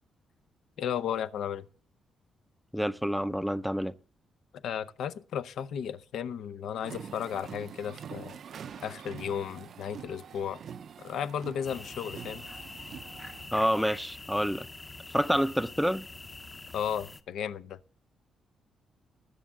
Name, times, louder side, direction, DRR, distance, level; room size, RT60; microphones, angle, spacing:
voice 1, 0.8-1.7 4.6-8.4 8.8-10.6 11.0-12.4 16.7-17.8, left 8 dB, 75° left, 0.7 m, -34 dB
voice 2, 2.7-3.9 13.5-14.7 15.1-16.0, equal, ahead, 0.5 m, -28 dB
sound 1, 6.8-13.5, right 7 dB, 55° right, 0.6 m, -45 dB
sound 2, 11.6-17.2, left 3 dB, 20° left, 0.8 m, -45 dB
20.0 x 7.4 x 3.7 m
cardioid pair, 135°, 0 cm